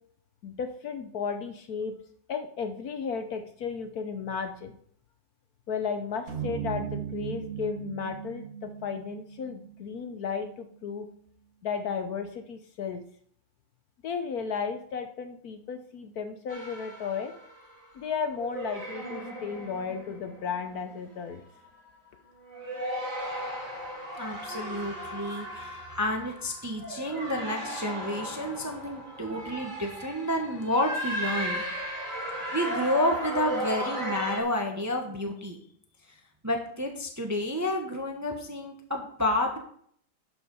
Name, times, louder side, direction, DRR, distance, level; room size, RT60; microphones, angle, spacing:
voice 1, 0.4-1.9 2.3-4.8 5.7-11.1 11.6-13.0 14.0-17.3 17.9-21.4, left 6 dB, 60° left, 7 dB, 1.2 m, -34 dB
sound 1, 6.3-10.6, right 8 dB, 45° right, 1.1 m, -38 dB
sound 2, 16.5-17.9 18.3-20.8 21.3-21.7 22.4-34.4, equal, 70° right, 4.7 m, -36 dB
voice 2, 24.2-31.6 32.5-35.6 36.4-39.6, left 1 dB, 15° right, 3 dB, 0.8 m, -30 dB
11.5 x 4.9 x 5.4 m, 0.62 s
omnidirectional pair, 2.0 m